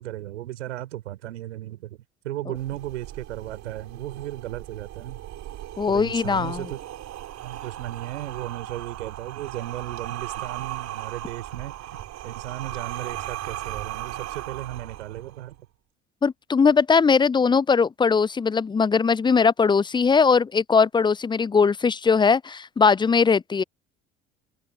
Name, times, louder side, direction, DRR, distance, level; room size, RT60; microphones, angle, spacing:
voice 1, 0.0-2.0 2.2-5.2 5.9-6.8 7.4-15.6, right 14 dB, 70° right, 4.2 m, -35 dB
sound 1, 2.5-15.5, right 13 dB, 45° right, 5.0 m, -37 dB
voice 2, 5.8-6.6 16.2-23.6, left 5 dB, 15° left, 0.5 m, -20 dB
figure-of-eight pair, 60°, 36 cm